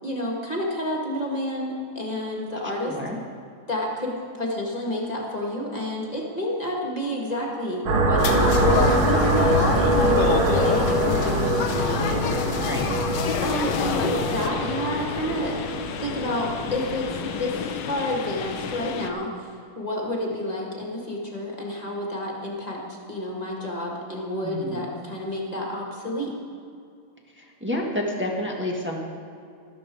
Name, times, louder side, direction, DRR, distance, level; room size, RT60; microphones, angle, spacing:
voice 1, 0.0-2.9 3.7-12.2 13.4-19.5 19.8-26.3, left 1 dB, 20° left, -2 dB, 1.9 m, -29 dB
voice 2, 2.8-3.2 12.5-12.9 24.4-24.9 27.3-29.0, left 1 dB, 5° right, -1 dB, 1.2 m, -29 dB
sound 1, 7.9-17.4, right 2 dB, 85° right, 2.3 m, -24 dB
sound 2, 8.2-14.5, left 6 dB, 60° left, 1.4 m, -26 dB
sound 3, 13.5-19.1, left 7 dB, 80° left, 1.6 m, -33 dB
13.5 x 12.5 x 4.6 m, 2.5 s
omnidirectional pair, 2.3 m